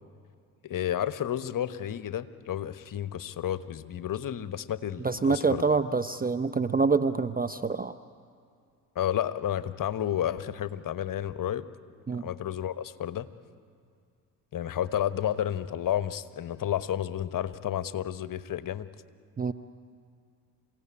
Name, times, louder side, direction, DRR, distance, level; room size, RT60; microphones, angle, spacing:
voice 1, 0.6-5.6 8.9-11.6 12.2-13.3 14.5-18.9, left 10 dB, 40° left, 13 dB, 1.2 m, -31 dB
voice 2, 5.0-7.9 12.1-12.3 19.4-19.5, right 4 dB, 20° right, 11 dB, 0.7 m, -26 dB
27.5 x 16.5 x 9.9 m, 2.2 s
hypercardioid pair, 60°, 50 cm